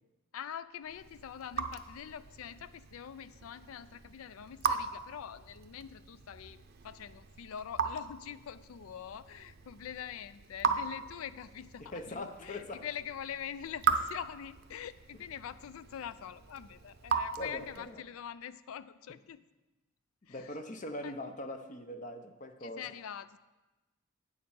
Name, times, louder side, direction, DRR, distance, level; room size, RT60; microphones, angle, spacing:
voice 1, 0.3-19.4 20.3-20.6 21.0-21.2 22.6-23.4, left 8 dB, 85° left, 15 dB, 0.4 m, -44 dB
Raindrop / Drip, 0.8-18.0, right 6 dB, 50° right, 0.5 m, -38 dB
voice 2, 11.8-12.8 17.4-18.0 20.3-22.8, left 1 dB, 35° left, 6 dB, 0.6 m, -42 dB
8.7 x 6.7 x 5.4 m, 1.1 s
head